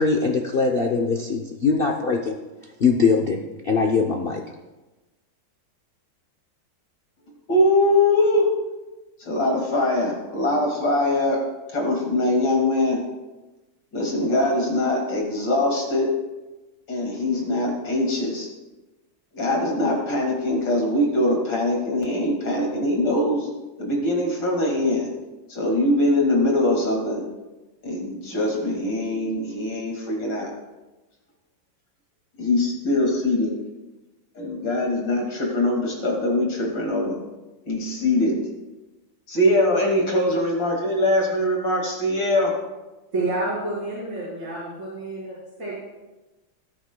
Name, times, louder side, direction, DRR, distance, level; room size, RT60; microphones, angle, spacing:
voice 1, 0.0-2.3 2.8-3.4 3.6-4.4, left 4 dB, 85° left, 1 dB, 0.5 m, -21 dB
voice 2, 7.5-8.5 9.2-11.4 11.7-13.0 13.9-16.1 16.9-18.5 19.3-23.5 23.8-25.1 25.5-27.2 27.8-30.5 32.4-33.5 34.3-37.2 37.7-38.3 39.3-42.5, left 1 dB, 70° left, -1 dB, 2.8 m, -22 dB
voice 3, 43.1-45.7, right 2 dB, 45° right, -13 dB, 4.6 m, -29 dB
19.5 x 8.8 x 2.2 m, 1.1 s
omnidirectional pair, 2.1 m